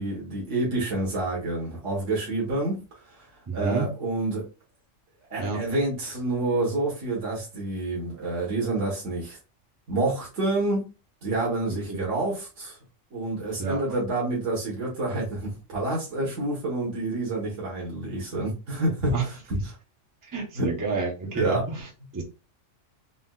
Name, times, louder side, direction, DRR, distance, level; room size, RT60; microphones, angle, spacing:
voice 1, 0.0-2.8 3.1-3.3 3.5-4.5 5.3-9.4 9.9-10.9 11.2-12.8 13.1-19.1 19.5-19.6 20.6-20.7 21.3-21.7, right 2 dB, 70° right, 1.4 m, -28 dB
voice 2, 3.5-3.9 5.4-5.6 11.7-12.1 13.6-13.8 19.1-19.3 20.3-21.9 22.1-22.2, right 4 dB, 25° right, 0.4 m, -30 dB
3.9 x 2.1 x 2.2 m
omnidirectional pair, 1.3 m